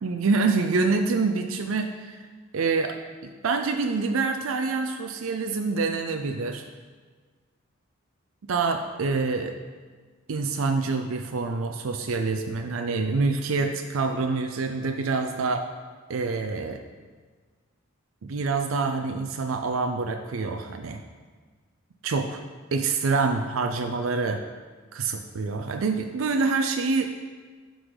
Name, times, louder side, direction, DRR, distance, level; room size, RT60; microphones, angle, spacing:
voice 1, 0.0-2.3 2.5-3.0 3.2-6.7 8.5-9.5 10.3-15.6 16.1-16.8 18.2-21.0 22.0-22.4 22.7-24.4 24.9-27.1, right 4 dB, 75° right, 5 dB, 0.5 m, -26 dB
11.0 x 3.9 x 4.9 m, 1.5 s
head